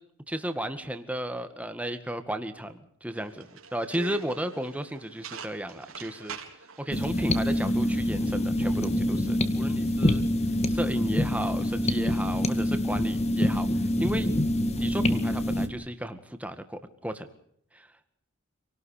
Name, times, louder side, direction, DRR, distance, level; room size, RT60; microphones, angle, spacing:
voice 1, 0.3-6.4 6.8-10.3 10.7-14.3 14.8-17.3 17.7-17.9, right 1 dB, 5° right, 8 dB, 1.9 m, -34 dB
sound 1, 3.1-8.1, right 5 dB, 75° right, 4.0 m, -44 dB
sound 2, 6.9-15.7, left 1 dB, 30° left, 2.0 m, -26 dB
28.0 x 18.5 x 6.7 m, 0.69 s
head